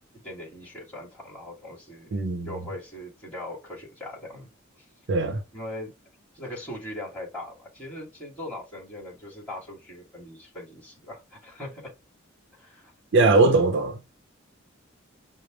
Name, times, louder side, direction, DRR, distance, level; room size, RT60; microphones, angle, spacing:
voice 1, 0.1-2.2 2.4-4.5 4.8-4.9 5.5-6.0 6.3-11.9 12.5-13.6, left 1 dB, 10° left, 2.3 m, -40 dB
voice 2, 2.1-2.5 5.1-5.4 13.1-14.0, right 3 dB, 60° right, 0.7 m, -20 dB
5.1 x 2.1 x 3.0 m
head